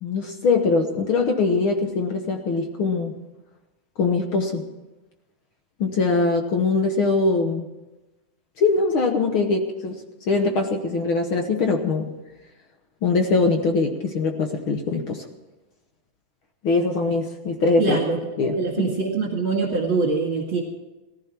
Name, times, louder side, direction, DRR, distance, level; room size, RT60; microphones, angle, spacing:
voice 1, 0.0-3.1 4.0-4.6 5.8-7.6 8.6-10.0 10.3-12.1 13.0-15.3 16.6-18.0 18.4-18.8, left 3 dB, 60° left, 4 dB, 1.5 m, -22 dB
voice 2, 17.8-18.2 18.6-20.6, right 4 dB, 45° right, -1 dB, 2.5 m, -23 dB
18.5 x 14.5 x 4.5 m, 1.1 s
omnidirectional pair, 3.6 m